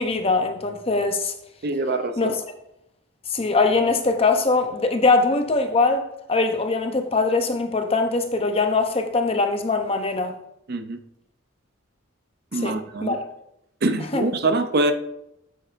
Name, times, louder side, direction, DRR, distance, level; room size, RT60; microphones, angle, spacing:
voice 1, 0.0-1.3 2.2-2.4 3.3-10.3 12.6-13.3 14.1-14.2, left 3 dB, 30° left, 0.7 m, -22 dB
voice 2, 1.6-2.3 10.7-11.0 12.5-13.2 13.8-14.9, right 2 dB, 50° right, 0.5 m, -24 dB
8.8 x 7.2 x 2.5 m
head